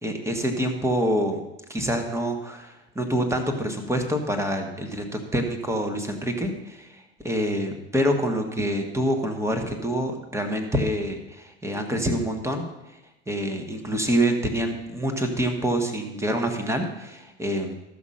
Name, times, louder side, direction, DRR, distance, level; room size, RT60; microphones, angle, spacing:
voice 1, 0.0-1.4 1.7-12.7 13.3-17.7, equal, 10° right, 5 dB, 1.8 m, -26 dB
13.5 x 6.2 x 5.8 m, 0.96 s
hypercardioid pair, 90°, 35 cm